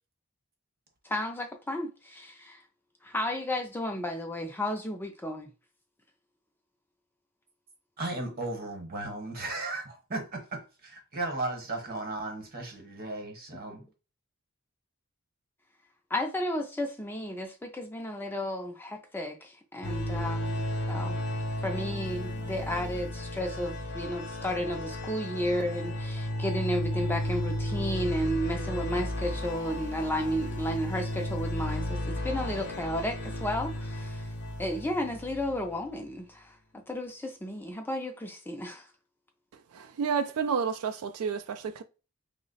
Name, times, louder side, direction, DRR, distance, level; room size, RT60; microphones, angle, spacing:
voice 1, 1.0-2.6 3.0-5.5 16.1-21.2 21.6-34.3 34.6-38.9, equal, 10° left, 0.3 m, -33 dB
voice 2, 8.0-13.9, right 2 dB, 45° right, 0.9 m, -35 dB
sound 1, 19.8-35.7, left 1 dB, 50° left, 0.6 m, -34 dB
voice 3, 39.7-41.8, right 6 dB, 90° right, 0.3 m, -30 dB
3.0 x 2.0 x 3.9 m
head